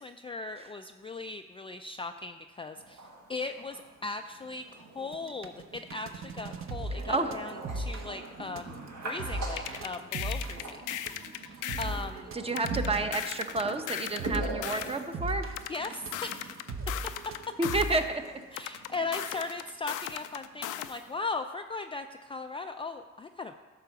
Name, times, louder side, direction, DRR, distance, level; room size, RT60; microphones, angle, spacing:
voice 1, 0.0-8.8 9.0-10.9 11.1-12.3 15.7-16.5 18.5-23.5, left 3 dB, 20° left, 6 dB, 0.3 m, -38 dB
sound 1, 2.8-21.1, right 2 dB, 75° right, 1.9 m, -44 dB
sound 2, 5.0-18.3, right 2 dB, 45° right, 0.9 m, -38 dB
voice 2, 6.9-7.4 12.3-15.5 17.6-18.2, right 2 dB, 20° right, 7 dB, 0.8 m, -30 dB
sound 3, 9.6-12.0 12.6-15.0 15.6-18.0 18.6-21.0, left 12 dB, 85° left, 0.5 m, -37 dB
11.5 x 3.8 x 7.0 m, 1.3 s
cardioid pair, 90°, 30 cm